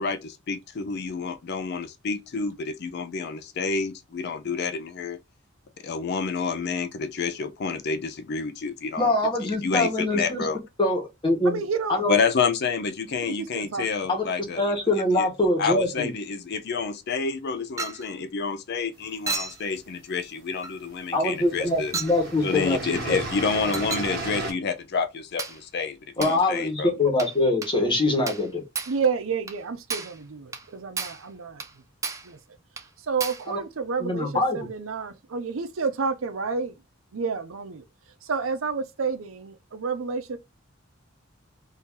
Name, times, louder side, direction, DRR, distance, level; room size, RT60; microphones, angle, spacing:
voice 1, 0.0-5.2 5.8-9.1 9.4-10.6 12.1-14.6 15.2-15.3 15.6-21.9 22.4-27.0, left 5 dB, 55° left, 0.5 m, -29 dB
voice 2, 9.0-10.5 10.8-11.6 11.9-12.1 14.1-14.2 14.6-16.1 21.1-23.2 26.2-28.6 33.5-33.6 34.0-34.6, left 2 dB, 25° left, 1.3 m, -24 dB
voice 3, 11.4-12.0 13.2-13.9 28.9-31.6 32.2-32.4 33.0-36.7 37.1-37.8 38.2-40.4, right 5 dB, 90° right, 0.6 m, -30 dB
Chink clink, 17.8-18.1 19.3-19.6 20.6-20.8 21.9-22.2 23.7-24.1 25.4-25.6 26.2-26.4 27.2-27.4 27.6-27.8 28.3-28.5 28.7-29.0 29.5-29.6 29.9-30.2 30.5-30.7 31.0-31.2 31.6-31.7 32.0-32.3 32.8-32.9 33.2-33.5, right 4 dB, 15° right, 0.4 m, -33 dB
sound 1, 19.1-20.0 20.9-21.0 21.3-24.5, right 2 dB, 50° right, 1.2 m, -34 dB
2.8 x 2.7 x 3.6 m
head